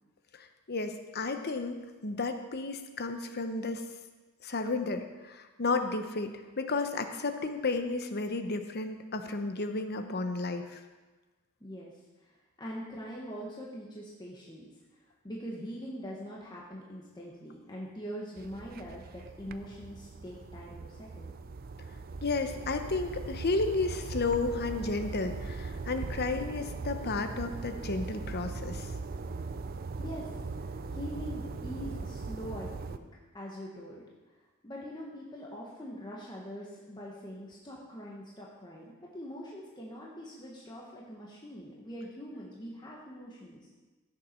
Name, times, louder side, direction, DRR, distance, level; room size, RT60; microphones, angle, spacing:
voice 1, 0.4-3.9 4.4-10.8 22.2-28.9, left 3 dB, 45° left, 7 dB, 0.9 m, -32 dB
voice 2, 11.6-11.9 12.2-12.3 12.6-14.7 15.0-21.3 30.0-30.3 30.6-33.1 33.3-34.0 34.6-43.6, equal, 20° left, -4 dB, 1.4 m, -43 dB
sound 1, 18.4-33.0, right 4 dB, 45° right, 0.5 m, -40 dB
16.0 x 6.9 x 4.5 m, 1.2 s
head